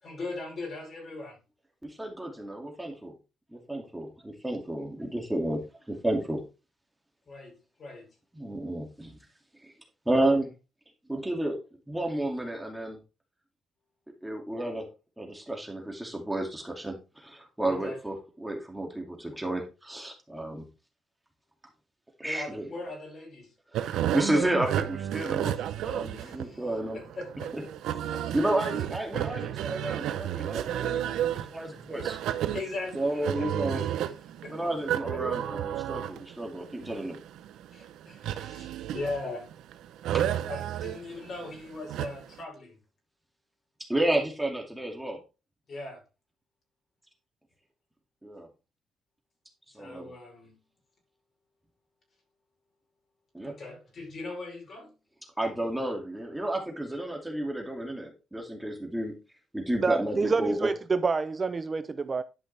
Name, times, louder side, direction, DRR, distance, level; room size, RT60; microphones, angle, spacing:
voice 1, 0.0-1.4 7.3-8.1 17.7-18.0 22.2-23.5 26.2-26.7 26.9-27.7 28.1-28.3 32.5-33.8 34.4-34.7 35.1-35.2 37.7-39.5 40.5-42.8 45.7-46.0 49.8-50.5 53.4-54.9, left 2 dB, 45° left, 5.3 m, -39 dB
voice 2, 1.8-3.1 3.5-5.6 5.9-6.4 8.3-9.2 9.6-9.7 10.1-10.5 11.1-11.6 11.9-13.0 14.2-14.9 15.2-20.7 22.2-22.7 23.7-27.0 27.5-27.6 28.3-32.2 32.9-33.9 34.5-37.2 40.1-40.2 43.9-45.2 48.2-48.5 49.7-50.1 53.3-53.5 55.4-59.1 59.5-60.7, right 1 dB, 10° right, 2.3 m, -31 dB
sound 1, 23.7-42.4, right 11 dB, 85° right, 0.7 m, -32 dB
voice 3, 59.8-62.2, right 4 dB, 30° right, 0.5 m, -27 dB
11.0 x 5.6 x 3.4 m
cardioid pair, 90°, 0 cm